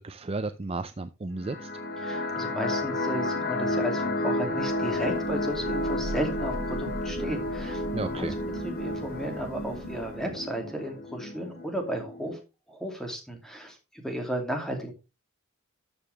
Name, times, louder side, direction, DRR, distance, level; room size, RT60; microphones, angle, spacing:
voice 1, 0.0-1.7 7.9-8.3, right 3 dB, 25° right, 11 dB, 0.5 m, -33 dB
sound 1, 1.4-12.3, left 1 dB, 45° left, 2.0 m, -31 dB
voice 2, 2.0-12.4 12.7-14.9, equal, ahead, 2 dB, 2.6 m, -34 dB
Thunder / Rain, 4.7-10.4, right 2 dB, 80° right, 0.9 m, -40 dB
13.5 x 6.8 x 3.4 m, 0.27 s
head